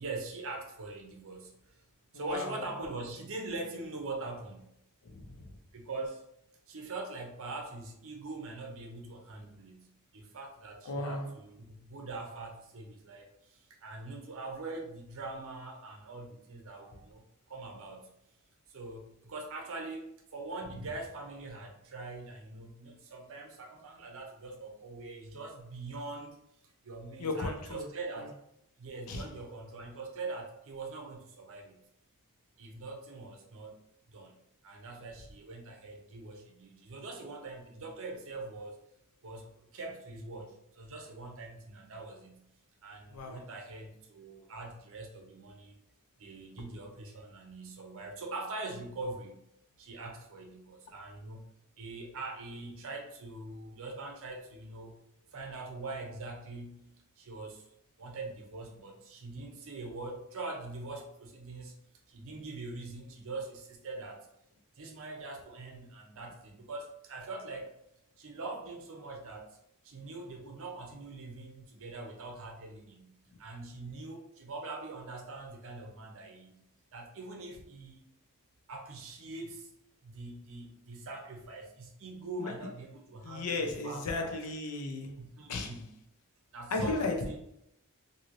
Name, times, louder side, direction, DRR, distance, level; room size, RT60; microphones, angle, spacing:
voice 1, 0.0-1.7 2.1-4.7 5.7-6.2 6.7-9.9 10.1-17.2 17.5-18.1 18.7-26.4 26.8-28.3 28.8-31.8 32.6-33.8 34.1-34.3 34.6-38.8 39.2-42.4 42.8-45.8 46.2-49.4 49.8-51.4 51.8-54.9 55.3-56.8 57.2-57.6 58.0-61.7 62.1-64.3 64.8-67.7 68.2-69.6 69.8-73.1 73.4-76.5 76.9-78.1 78.7-79.7 80.0-84.4 85.2-85.9 86.5-87.4, right 3 dB, 65° right, 0.6 m, -43 dB
voice 2, 2.1-2.7 5.0-5.4 10.9-11.3 27.2-27.8 29.1-29.2 43.1-43.4 83.2-85.1 85.5-85.7 86.7-87.4, left 3 dB, 90° left, 0.5 m, -34 dB
3.0 x 2.7 x 2.5 m
head